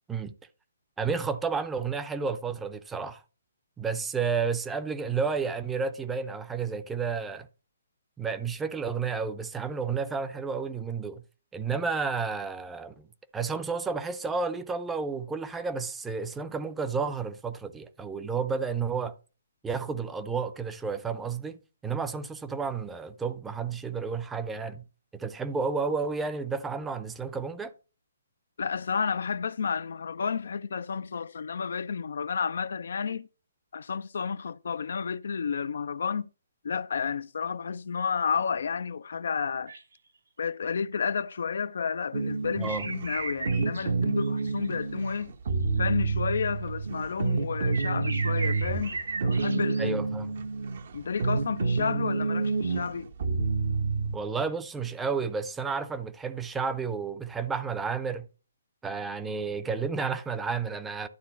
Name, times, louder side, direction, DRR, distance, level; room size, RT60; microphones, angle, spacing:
voice 1, 1.0-3.2 3.8-7.5 8.2-11.2 11.5-13.1 13.3-19.1 19.6-21.6 21.8-24.8 25.1-27.7 42.6-42.9 49.8-50.3 54.1-58.3 58.8-61.1, right 5 dB, 10° right, 0.7 m, -31 dB
voice 2, 28.6-33.3 33.7-36.3 36.6-39.7 40.4-45.3 45.8-50.0 50.9-53.1, left 6 dB, 60° left, 0.4 m, -31 dB
sound 1, 39.7-40.0 42.6-43.8 44.2-44.8 47.7-49.9, right 4 dB, 65° right, 3.5 m, -36 dB
sound 2, 42.1-54.2, right 4 dB, 50° right, 1.1 m, -29 dB
11.5 x 3.8 x 5.7 m
figure-of-eight pair, 135°, 0 cm